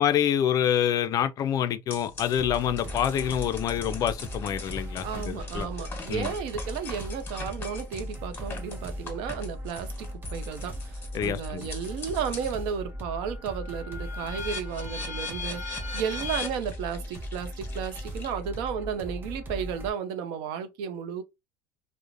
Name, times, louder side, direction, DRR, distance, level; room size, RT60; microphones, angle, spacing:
voice 1, 0.0-5.7 6.1-6.3 11.1-11.7, left 10 dB, 45° left, 0.3 m, -26 dB
sound 1, 1.9-12.6 13.0-18.7, left 4 dB, 25° left, 1.1 m, -41 dB
sound 2, 2.3-19.9, equal, 25° right, 0.6 m, -38 dB
voice 2, 5.0-15.6 15.9-21.2, right 7 dB, 70° right, 0.5 m, -33 dB
2.4 x 2.0 x 3.0 m
supercardioid pair, 105°, 9 cm